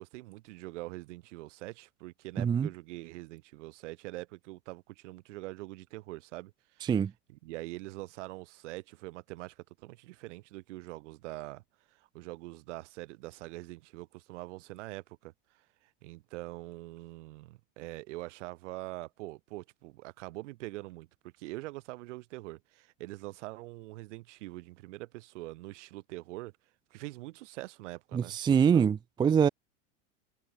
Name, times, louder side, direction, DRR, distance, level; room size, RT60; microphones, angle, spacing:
voice 1, 0.0-6.9 7.3-11.6 11.9-21.1 21.4-26.5 26.9-28.9, right 19 dB, 70° right, 2.0 m, -44 dB
voice 2, 2.4-2.7 6.8-7.1 28.1-29.5, right 7 dB, 10° right, 0.6 m, -24 dB
supercardioid pair, 145°, 37 cm